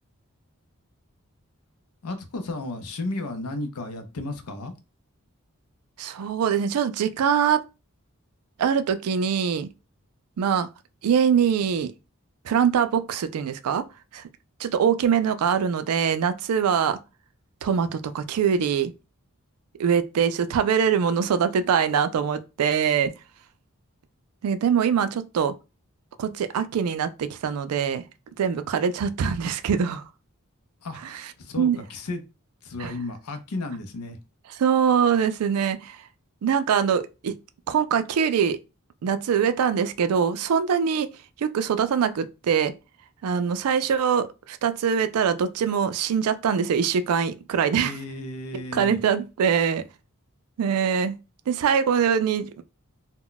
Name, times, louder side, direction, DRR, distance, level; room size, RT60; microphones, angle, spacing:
voice 1, 2.0-4.7 30.8-31.0 31.4-32.2 32.6-34.2 47.8-49.0, left 2 dB, 85° left, 0.6 m, -33 dB
voice 2, 6.0-7.6 8.6-9.7 10.4-10.7 11.0-11.9 12.5-13.8 14.1-14.2 14.6-17.0 17.6-18.9 19.8-23.1 24.4-25.5 26.2-28.0 28.4-30.0 31.6-31.8 32.8-32.9 34.6-36.0 36.4-37.3 37.7-38.6 39.0-41.1 41.4-42.7 43.2-47.9 48.5-49.8 50.6-51.2 51.5-52.6, right 7 dB, 80° right, 0.3 m, -23 dB
2.2 x 2.1 x 3.8 m
head